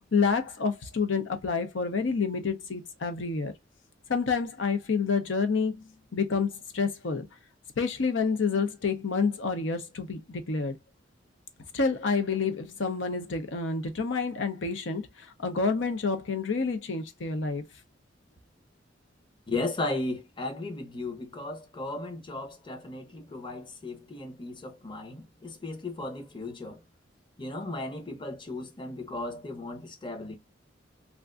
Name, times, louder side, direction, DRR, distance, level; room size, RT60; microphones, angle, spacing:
voice 1, 0.1-3.5 4.1-5.8 6.1-7.3 7.8-10.8 11.7-17.6, left 4 dB, 80° left, 0.6 m, -28 dB
voice 2, 19.5-26.8 27.4-30.4, left 2 dB, 25° left, 0.8 m, -36 dB
3.4 x 2.5 x 2.4 m
head